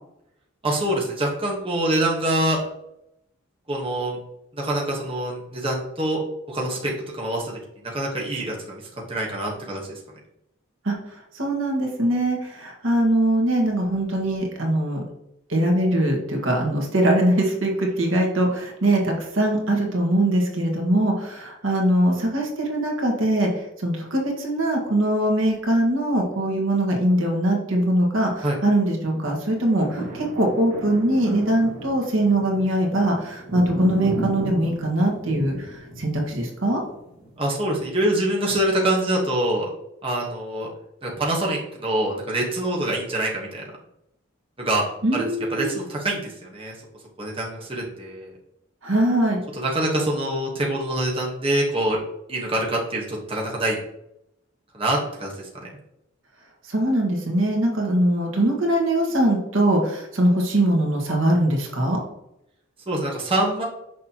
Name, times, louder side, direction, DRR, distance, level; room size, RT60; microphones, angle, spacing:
voice 1, 0.6-2.6 3.7-4.2 4.5-6.2 6.5-7.6 7.9-8.8 9.1-9.8 28.4-28.6 37.4-39.7 40.0-40.7 41.0-43.6 44.6-44.8 45.1-46.7 47.2-48.3 49.6-52.0 52.3-53.8 54.7-55.3 55.6-55.7 62.9-63.6, right 1 dB, 25° right, -3 dB, 1.2 m, -25 dB
voice 2, 11.3-15.0 15.5-36.8 45.0-45.8 48.8-49.4 56.6-62.0, right 1 dB, 80° right, 0 dB, 1.6 m, -22 dB
sound 1, 29.4-37.6 38.2-38.3, right 1 dB, 45° right, 1.9 m, -34 dB
6.4 x 5.4 x 2.9 m, 0.82 s
head